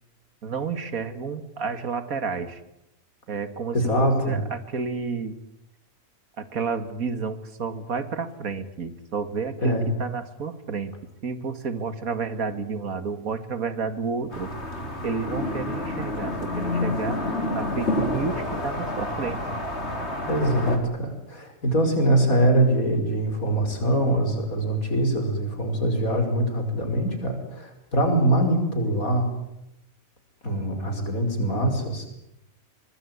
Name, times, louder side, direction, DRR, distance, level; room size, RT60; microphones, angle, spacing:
voice 1, 0.4-2.6 3.3-3.9 4.2-5.3 6.4-10.9 11.2-14.5 15.0-17.2 17.5-19.4, right 5 dB, 80° right, 11 dB, 2.3 m, -30 dB
voice 2, 3.7-4.4 9.6-9.9 20.3-29.3 30.4-32.1, right 1 dB, 80° left, 5 dB, 5.8 m, -23 dB
sound 1, 14.3-20.8, left 1 dB, 50° left, 3.9 m, -29 dB
24.5 x 20.0 x 9.7 m, 0.84 s
omnidirectional pair, 1.4 m